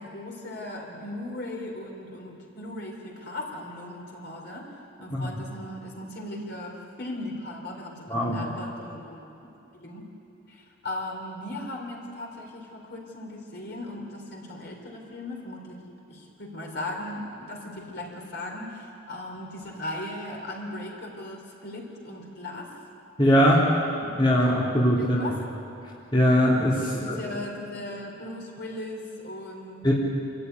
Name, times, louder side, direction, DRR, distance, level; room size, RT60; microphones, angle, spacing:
voice 1, 0.0-9.3 9.7-10.1 10.5-15.8 16.1-22.7 24.4-24.6 25.0-25.4 26.8-29.9, left 1 dB, 50° left, 0 dB, 3.8 m, -38 dB
voice 2, 23.2-23.7 24.0-25.2 26.1-27.2 29.8-29.9, equal, 25° left, -6 dB, 2.8 m, -21 dB
26.5 x 14.0 x 9.4 m, 2.8 s
head